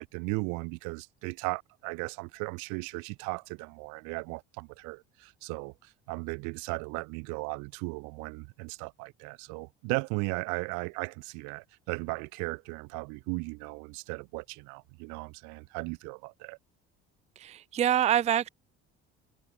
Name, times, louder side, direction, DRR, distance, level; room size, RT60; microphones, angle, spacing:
voice 1, 0.0-16.6, right 33 dB, 75° right, 0.7 m, -36 dB
voice 2, 17.4-18.5, right 10 dB, 25° right, 0.4 m, -25 dB
supercardioid pair, 75°, 30 cm